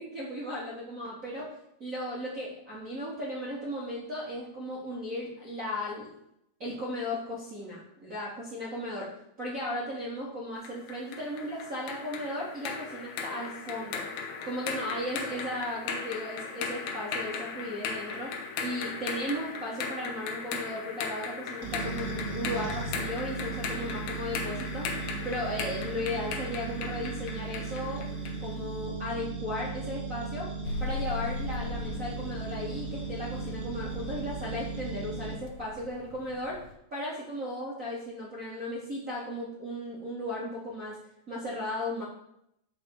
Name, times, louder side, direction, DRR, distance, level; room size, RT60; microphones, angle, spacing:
voice 1, 0.0-1.5 1.8-6.2 6.6-9.1 9.4-28.1 28.4-30.5 30.8-36.6 36.9-41.0 41.3-42.0, left 1 dB, 60° right, -7 dB, 0.8 m, -36 dB
sound 1, 10.7-28.5, left 5 dB, 70° left, 2.5 m, -37 dB
sound 2, 21.6-35.3, right 4 dB, 80° right, 1.1 m, -37 dB
sound 3, 30.6-36.7, left 4 dB, 90° left, 3.2 m, -40 dB
6.3 x 5.9 x 7.2 m, 0.78 s
omnidirectional pair, 5.5 m